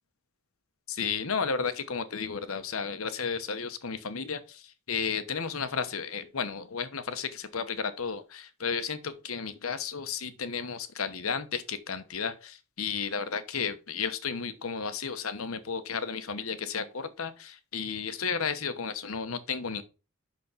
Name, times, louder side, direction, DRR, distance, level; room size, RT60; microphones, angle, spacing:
voice 1, 0.9-19.8, left 6 dB, 90° left, 1.0 m, -33 dB
6.1 x 5.9 x 5.7 m
head